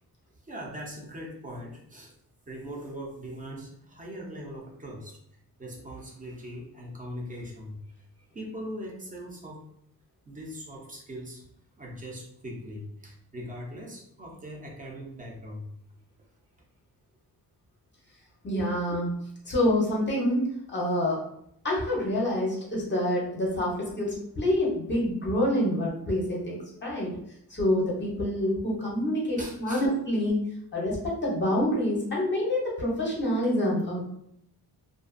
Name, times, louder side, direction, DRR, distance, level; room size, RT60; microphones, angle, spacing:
voice 1, 0.4-2.1 2.5-5.2 5.6-7.8 8.3-9.6 10.3-11.4 11.8-15.7 29.4-29.8, equal, 20° right, -2 dB, 0.4 m, -40 dB
voice 2, 18.4-19.2 19.5-21.2 21.6-27.1 27.5-30.4 30.7-34.1, left 1 dB, 30° left, -4 dB, 0.6 m, -27 dB
2.5 x 2.2 x 2.4 m, 0.73 s
wide cardioid pair, 180°, 39 cm